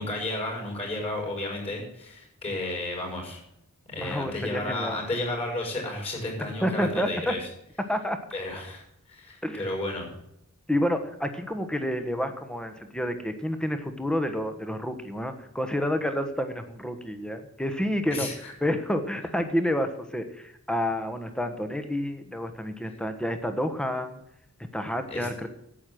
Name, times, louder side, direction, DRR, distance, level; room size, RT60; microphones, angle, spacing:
voice 1, 0.0-3.4 3.9-7.4 8.3-8.8 9.1-10.1 18.1-18.5 25.1-25.3, left 2 dB, 30° left, 1 dB, 6.2 m, -32 dB
voice 2, 4.0-5.0 6.4-7.3 7.9-8.2 9.4-9.6 10.7-18.3 18.6-24.2 24.7-25.5, equal, 5° left, 8 dB, 1.2 m, -29 dB
11.5 x 8.5 x 7.7 m, 0.80 s
head